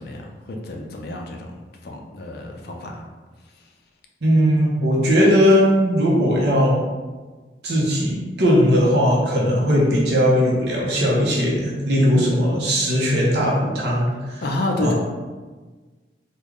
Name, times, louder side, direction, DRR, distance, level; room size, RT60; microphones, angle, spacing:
voice 1, 0.0-3.0 14.4-14.9, left 2 dB, 60° left, 2 dB, 0.5 m, -29 dB
voice 2, 4.2-6.8 7.6-14.4 14.8-14.9, equal, 70° right, -4 dB, 0.8 m, -18 dB
3.6 x 2.3 x 3.1 m, 1.3 s
head